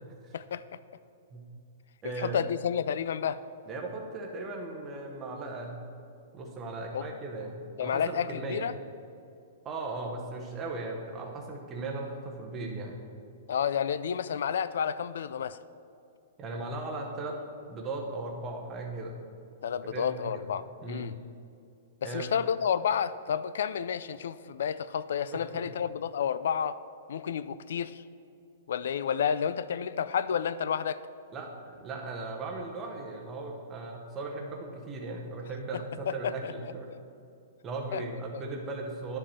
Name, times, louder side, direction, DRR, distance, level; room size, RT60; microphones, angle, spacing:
voice 1, 0.3-0.8 2.0-3.4 6.9-7.1 7.8-8.7 13.5-15.6 19.6-21.1 22.0-26.8 27.1-28.0 28.7-31.0 36.1-37.0 37.9-38.2, left 8 dB, 65° left, 15 dB, 0.3 m, -31 dB
voice 2, 2.0-2.4 3.7-5.8 6.3-8.7 9.6-13.0 16.4-17.4 17.7-19.2 19.9-20.4 20.8-21.1 22.0-22.3 25.3-25.7 31.3-36.9 37.6-39.2, right 3 dB, 15° right, 0 dB, 0.8 m, -37 dB
10.5 x 5.1 x 4.3 m, 2.6 s
hypercardioid pair, 175°, 0 cm